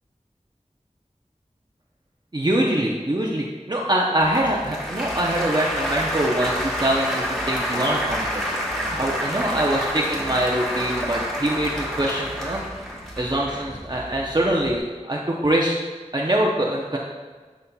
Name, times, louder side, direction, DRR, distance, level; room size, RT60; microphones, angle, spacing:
voice 1, 2.3-8.4 8.7-12.6 13.2-15.7 16.1-17.0, right 1 dB, 35° right, -3 dB, 0.6 m, -24 dB
Applause, 4.2-14.8, equal, 5° left, 1.4 m, -29 dB
10.5 x 4.1 x 2.3 m, 1.4 s
wide cardioid pair, 45°, 13 cm